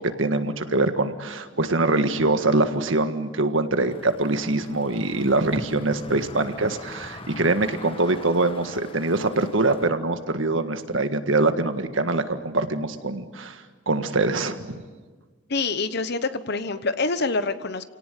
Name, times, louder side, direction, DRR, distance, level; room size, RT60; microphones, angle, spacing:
voice 1, 0.0-14.8, right 2 dB, 90° right, 8 dB, 1.7 m, -24 dB
sound 1, 3.9-9.9, left 2 dB, 30° left, 1.4 m, -41 dB
voice 2, 15.5-17.8, left 3 dB, 60° left, 12 dB, 1.2 m, -26 dB
28.0 x 18.0 x 9.2 m, 1.4 s
head